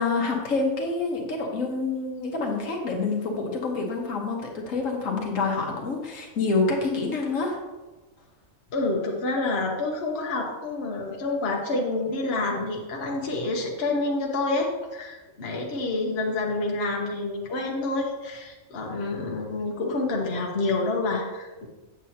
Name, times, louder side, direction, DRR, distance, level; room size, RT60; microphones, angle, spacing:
voice 1, 0.0-7.6, left 3 dB, 65° left, 0 dB, 1.5 m, -27 dB
voice 2, 8.7-21.7, left 2 dB, 50° left, -1 dB, 1.2 m, -28 dB
8.0 x 7.6 x 2.8 m, 1.2 s
omnidirectional pair, 1.5 m